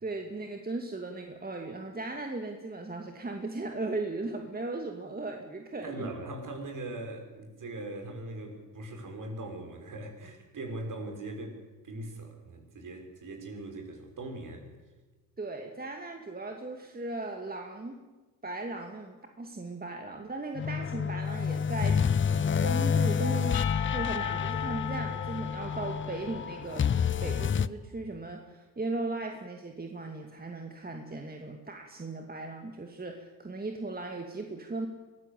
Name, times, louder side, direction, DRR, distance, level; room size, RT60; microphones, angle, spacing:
voice 1, 0.0-6.1 15.4-18.0 18.4-22.0 22.3-23.6 23.9-26.8 27.2-34.9, right 2 dB, 20° right, 3 dB, 2.5 m, -37 dB
voice 2, 5.8-14.7, right 2 dB, 40° right, 3 dB, 6.4 m, -40 dB
sound 1, 20.5-27.7, left 7 dB, 25° left, 0.7 m, -29 dB
Percussion / Church bell, 23.5-27.2, left 9 dB, 50° left, 2.7 m, -38 dB
23.5 x 15.0 x 8.5 m, 1.2 s
hypercardioid pair, 70°, 46 cm